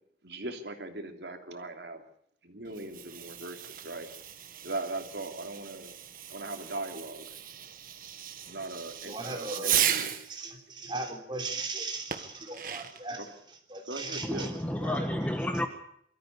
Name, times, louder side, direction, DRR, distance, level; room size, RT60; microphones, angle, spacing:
voice 1, 0.2-2.0 2.4-4.1 4.6-5.9 6.3-7.3 8.5-10.1 13.2-13.3 13.9-14.6, right 2 dB, 70° right, 5 dB, 3.0 m, -39 dB
Fireworks, 2.7-10.3 12.1-13.1, right 10 dB, 50° right, 1.7 m, -35 dB
voice 2, 9.0-9.8 10.3-13.3 13.7-15.0, right 3 dB, 25° right, 3 dB, 3.6 m, -38 dB
voice 3, 14.2-15.7, left 1 dB, 10° left, 6 dB, 1.2 m, -31 dB
23.5 x 14.0 x 8.6 m, 0.69 s
head